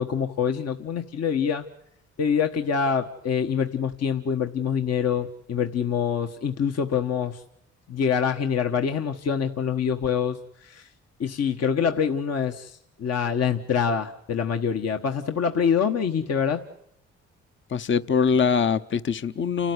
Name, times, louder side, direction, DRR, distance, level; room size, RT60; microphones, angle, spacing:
voice 1, 0.0-1.6 2.2-7.4 7.9-10.9 11.2-16.6, left 7 dB, 55° left, 1.4 m, -25 dB
voice 2, 17.7-19.7, left 6 dB, 40° left, 0.9 m, -23 dB
30.0 x 13.0 x 9.7 m
cardioid pair, 90°, 30 cm